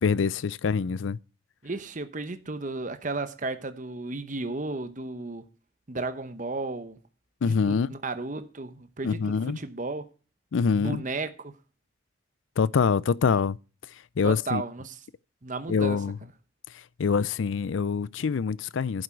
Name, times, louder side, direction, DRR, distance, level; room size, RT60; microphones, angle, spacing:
voice 1, 0.0-1.2 7.4-7.9 9.0-9.6 10.5-11.0 12.6-13.6 14.2-14.6 15.7-16.2 17.0-19.0, left 5 dB, 75° left, 0.4 m, -25 dB
voice 2, 1.6-5.5 5.9-7.0 7.4-10.1 10.8-11.6 14.2-15.0 15.4-16.0, right 3 dB, 40° right, 0.9 m, -34 dB
11.5 x 7.9 x 4.6 m
head